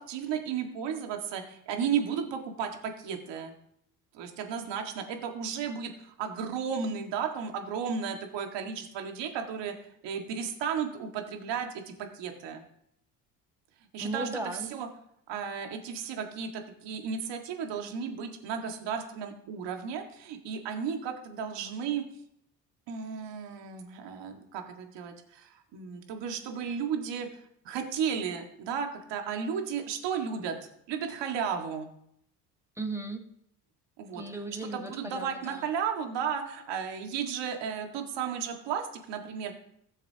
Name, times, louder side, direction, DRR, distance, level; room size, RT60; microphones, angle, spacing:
voice 1, 0.0-3.5 4.1-9.7 10.0-12.6 13.9-14.3 14.7-14.9 15.3-22.0 22.9-30.6 30.9-31.9 34.0-34.2 34.7-39.5, right 7 dB, 60° right, 4 dB, 1.9 m, -34 dB
voice 2, 14.0-14.7 32.7-33.2 34.1-35.7, right 2 dB, 5° right, 4 dB, 1.7 m, -36 dB
16.0 x 7.0 x 2.9 m, 0.71 s
hypercardioid pair, 70°, 48 cm